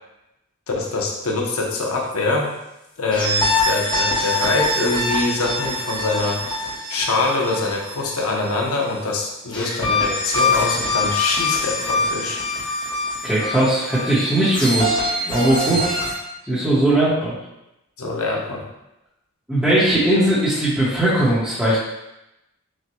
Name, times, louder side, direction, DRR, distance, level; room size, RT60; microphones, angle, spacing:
voice 1, 0.7-2.5 3.0-12.4 15.7-15.9 18.0-18.6, left 3 dB, 85° left, -1 dB, 0.8 m, -24 dB
sound 1, 3.1-8.7 9.5-16.1, left 2 dB, 20° left, 0.8 m, -24 dB
voice 2, 13.2-16.0 16.4-17.3 19.5-21.8, right 1 dB, 5° right, -12 dB, 0.9 m, -19 dB
6.1 x 2.2 x 3.0 m, 0.91 s
head